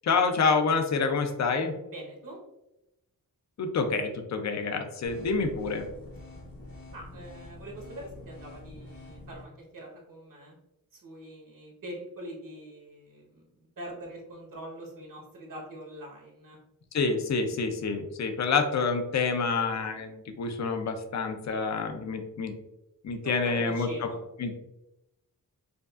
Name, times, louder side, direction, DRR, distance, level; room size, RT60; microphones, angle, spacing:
voice 1, 0.0-1.7 3.6-5.8 16.9-22.5 23.0-23.9 24.4-24.6, left 4 dB, 50° left, 6 dB, 0.5 m, -27 dB
voice 2, 1.9-2.4 6.9-10.6 10.9-16.6 23.2-24.2, right 1 dB, 65° right, -2 dB, 1.1 m, -43 dB
sound 1, 5.0-9.4, left 2 dB, 70° left, 1.2 m, -46 dB
5.0 x 2.3 x 2.4 m, 0.88 s
wide cardioid pair, 135°, 35 cm